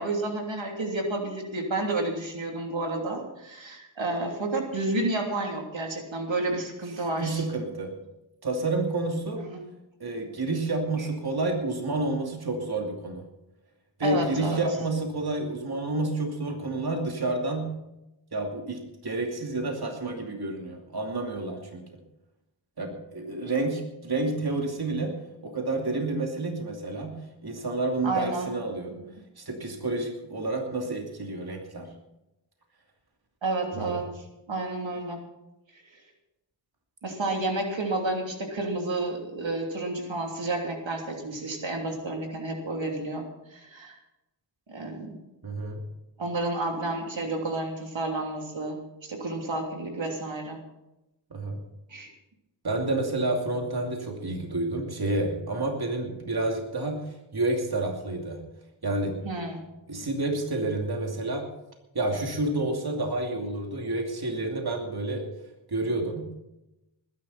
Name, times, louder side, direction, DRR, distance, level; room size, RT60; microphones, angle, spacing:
voice 1, 0.0-7.4 9.3-9.6 14.0-14.6 28.0-28.5 28.9-29.1 33.4-35.2 35.9-36.0 37.0-43.2 43.5-44.0 44.7-45.1 46.2-48.8 49.1-50.6 51.9-52.1 59.2-59.6 59.9-60.0, right 2 dB, 75° right, 1 dB, 3.2 m, -30 dB
voice 2, 7.2-7.9 8.4-9.4 10.0-13.2 14.0-17.7 18.3-21.8 22.8-25.1 25.4-27.2 27.4-28.9 29.4-31.9 33.7-34.0 45.4-45.8 51.3-51.6 52.6-58.4 58.8-59.2 59.9-61.4 61.9-65.2 65.7-66.3, right 2 dB, 55° right, 1 dB, 2.7 m, -29 dB
20.5 x 11.0 x 4.3 m, 0.92 s
wide cardioid pair, 65°, 46 cm